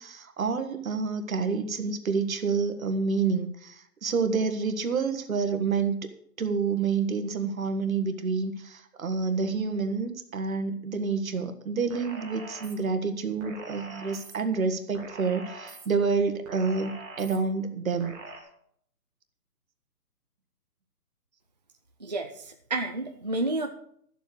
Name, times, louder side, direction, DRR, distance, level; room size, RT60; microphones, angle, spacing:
voice 1, 0.0-6.1 6.4-18.1, right 5 dB, 60° right, 8 dB, 1.7 m, -28 dB
sound 1, 11.9-12.7 13.4-14.3 14.9-15.8 16.4-17.4 18.0-18.4, right 2 dB, 10° right, 1.2 m, -43 dB
voice 2, 22.0-23.7, right 2 dB, 30° right, 3 dB, 0.5 m, -30 dB
13.0 x 7.4 x 6.5 m, 0.66 s
hypercardioid pair, 160°, 46 cm